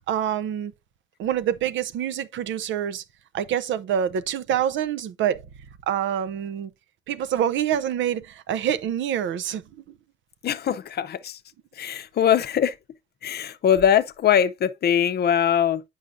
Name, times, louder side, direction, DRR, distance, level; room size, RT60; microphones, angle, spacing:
voice 1, 0.1-0.7 1.2-3.0 3.3-5.4 5.9-6.7 7.1-9.6, right 9 dB, 75° right, 0.6 m, -26 dB
voice 2, 10.4-11.4 11.8-12.7 13.2-15.8, left 9 dB, 55° left, 0.6 m, -22 dB
8.2 x 5.5 x 2.5 m
cardioid pair, 90°, 20 cm